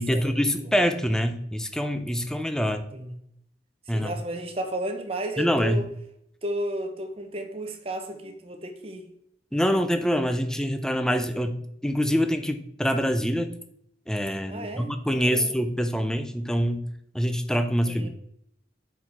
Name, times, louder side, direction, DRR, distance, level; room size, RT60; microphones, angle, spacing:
voice 1, 0.0-2.8 3.9-4.2 5.4-5.8 9.5-13.5 14.1-16.8 17.1-18.1, equal, 5° left, 8 dB, 0.5 m, -25 dB
voice 2, 3.9-5.9 6.4-9.0 14.5-15.5 17.9-18.1, right 1 dB, 35° right, 6 dB, 0.8 m, -33 dB
7.8 x 4.8 x 4.3 m, 0.77 s
head